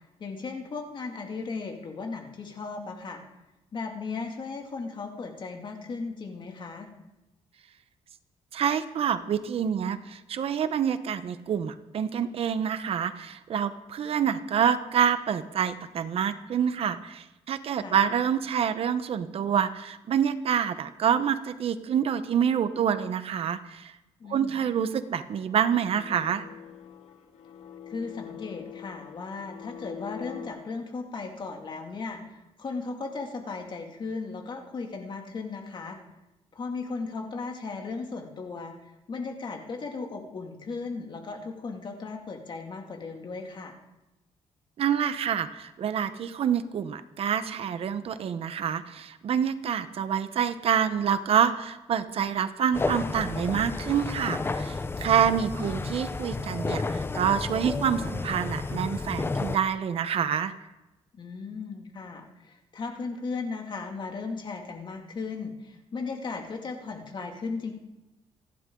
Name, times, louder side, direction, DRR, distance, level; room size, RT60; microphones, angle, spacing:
voice 1, 0.2-3.2 3.7-6.9 17.8-18.0 24.2-24.6 27.9-36.0 36.5-43.7 55.2-55.4 61.1-67.7, left 4 dB, 40° left, 2 dB, 2.5 m, -36 dB
voice 2, 8.5-23.9 24.3-26.4 44.8-60.5, right 8 dB, 55° right, 11 dB, 0.9 m, -27 dB
sound 1, 24.5-30.5, left 9 dB, 85° left, 2.2 m, -45 dB
sound 2, 52.7-59.6, left 3 dB, 20° left, 0.7 m, -31 dB
27.5 x 11.5 x 3.9 m, 0.99 s
cardioid pair, 115°, 12 cm